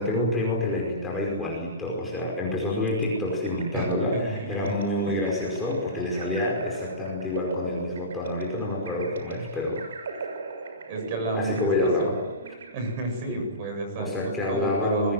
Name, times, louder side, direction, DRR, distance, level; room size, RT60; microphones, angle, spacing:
voice 1, 0.0-9.8 11.3-12.2 13.3-13.4 14.0-15.1, left 2 dB, 5° left, -3 dB, 5.1 m, -27 dB
sound 1, 2.9-13.3, right 4 dB, 70° right, 6.6 m, -38 dB
voice 2, 3.7-4.7 5.1-5.2 10.9-12.2 12.7-15.1, right 2 dB, 25° right, 5 dB, 7.8 m, -31 dB
28.0 x 22.0 x 7.8 m, 1.1 s
hypercardioid pair, 175°, 0 cm